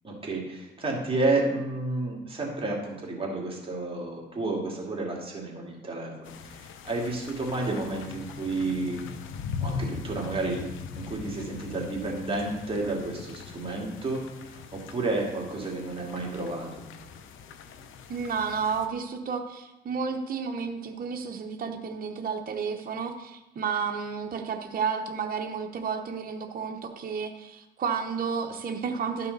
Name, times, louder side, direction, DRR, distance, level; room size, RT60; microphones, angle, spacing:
voice 1, 0.0-9.0 9.6-10.7 10.9-16.7, right 2 dB, 25° right, -2 dB, 2.3 m, -31 dB
sound 1, 6.2-18.9, left 5 dB, 80° left, 0.7 m, -40 dB
voice 2, 18.1-29.3, right 6 dB, 45° right, 4 dB, 0.9 m, -31 dB
12.0 x 5.5 x 4.0 m, 0.97 s
cardioid pair, 90°, 20 cm